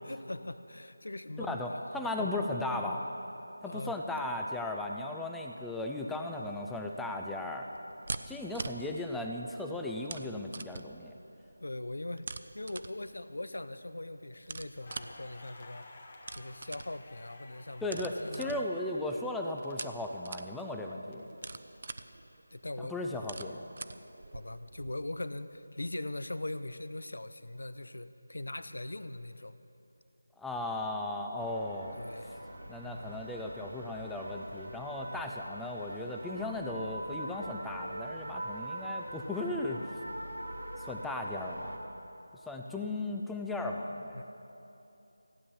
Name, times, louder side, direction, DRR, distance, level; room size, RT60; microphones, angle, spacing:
voice 1, 0.0-1.9 2.2-2.3 3.6-3.9 11.6-12.3 12.5-15.9 16.3-18.7 22.5-23.2 24.3-29.5 31.9-32.4 32.8-33.3 44.1-44.2, left 2 dB, 75° left, 12 dB, 0.6 m, -41 dB
voice 2, 1.4-3.1 3.6-7.7 8.3-11.2 17.8-21.3 22.8-23.6 30.4-32.0 32.7-39.8 40.8-41.8 42.5-44.2, left 2 dB, 5° left, 1 dB, 0.4 m, -36 dB
sound 1, 6.3-24.9, right 3 dB, 45° right, 0.5 m, -46 dB
Crackle, 14.8-20.6 20.9-22.7, left 2 dB, 40° left, 1.6 m, -54 dB
sound 2, 31.4-41.8, right 1 dB, 85° right, 2.2 m, -43 dB
15.5 x 9.6 x 7.1 m, 2.9 s
figure-of-eight pair, 165°, 0 cm